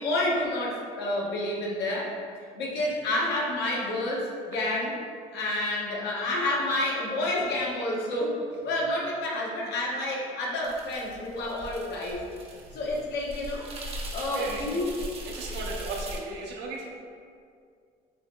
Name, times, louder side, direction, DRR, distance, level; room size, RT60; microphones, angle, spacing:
voice 1, 0.0-2.1 2.5-4.9 5.3-8.4 8.6-12.2 12.7-13.7 14.1-14.9, left 1 dB, 80° left, -4 dB, 1.0 m, -29 dB
sound 1, 10.6-16.2, right 1 dB, 35° right, 0.6 m, -39 dB
voice 2, 12.5-12.8 14.2-14.7 15.3-16.9, right 3 dB, 85° right, 0 dB, 0.7 m, -37 dB
5.9 x 2.9 x 2.2 m, 2.2 s
cardioid pair, 110°, 17 cm